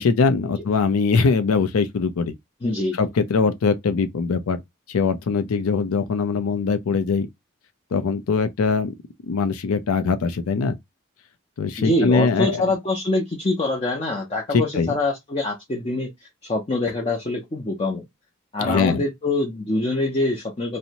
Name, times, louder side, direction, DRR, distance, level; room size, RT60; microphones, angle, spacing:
voice 1, 0.0-2.4 3.0-4.6 4.9-7.3 7.9-8.9 9.2-10.8 11.6-12.7 14.5-14.9 18.6-19.0, left 4 dB, 85° left, 0.4 m, -22 dB
voice 2, 2.6-3.0 11.8-18.0 18.5-20.8, left 2 dB, 30° left, 0.5 m, -24 dB
2.6 x 2.0 x 2.8 m
head